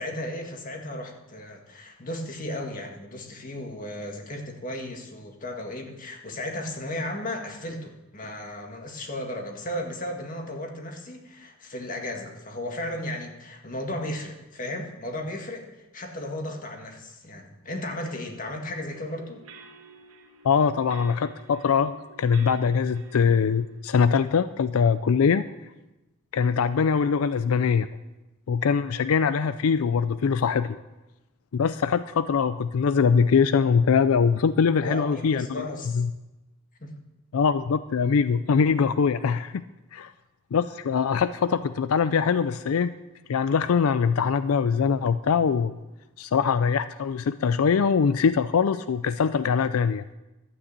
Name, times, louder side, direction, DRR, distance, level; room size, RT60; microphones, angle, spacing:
voice 1, 0.0-15.7 15.9-19.4 34.8-36.0 36.8-36.9, left 1 dB, 40° left, 3 dB, 1.8 m, -35 dB
sound 1, 18.9-24.3, right 4 dB, 80° right, 1.6 m, -50 dB
voice 2, 20.4-25.4 26.3-27.9 28.5-30.8 31.5-35.6 35.9-36.1 37.3-39.6 39.9-40.1 40.5-42.9 43.3-45.7 46.2-50.0, left 6 dB, 85° left, 14 dB, 0.4 m, -22 dB
12.0 x 8.8 x 8.2 m, 1.0 s
head